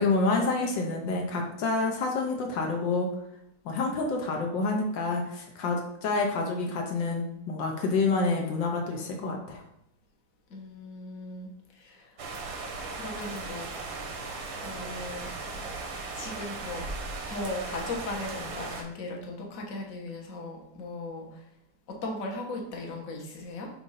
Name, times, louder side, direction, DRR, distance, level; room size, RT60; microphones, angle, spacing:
voice 1, 0.0-3.1 3.6-9.6, left 3 dB, 80° left, 1 dB, 1.6 m, -28 dB
voice 2, 10.5-12.2 12.9-14.0 14.6-15.3 16.1-16.8 17.3-21.4 21.9-23.7, left 2 dB, 50° left, 0 dB, 1.5 m, -38 dB
sound 1, 12.2-18.8, right 3 dB, 85° right, 1.8 m, -37 dB
7.6 x 2.7 x 5.6 m, 0.78 s
omnidirectional pair, 2.0 m